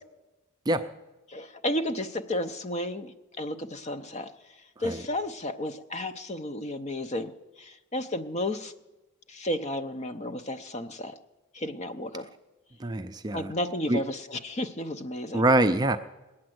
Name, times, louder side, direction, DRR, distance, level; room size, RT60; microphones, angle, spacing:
voice 1, 1.3-4.3 4.8-7.3 7.6-8.7 9.3-11.2 11.5-12.3 13.3-15.4, left 1 dB, 30° left, 9 dB, 0.6 m, -32 dB
voice 2, 12.8-13.5 13.9-14.0 15.3-16.0, right 1 dB, 20° right, 8 dB, 0.4 m, -24 dB
19.5 x 8.7 x 7.8 m, 1.1 s
head